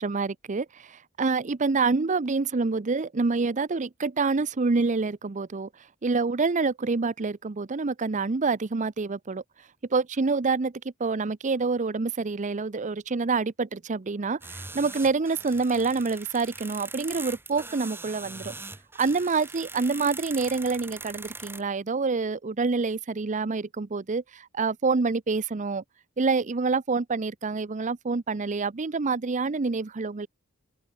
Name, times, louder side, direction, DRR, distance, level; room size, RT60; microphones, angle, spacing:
voice 1, 0.0-5.7 6.0-9.4 9.9-10.7 11.0-18.5 19.0-25.8 26.2-30.3, right 4 dB, 35° right, 0.6 m, -27 dB
sound 1, 14.4-21.6, right 3 dB, 10° right, 1.3 m, -41 dB
head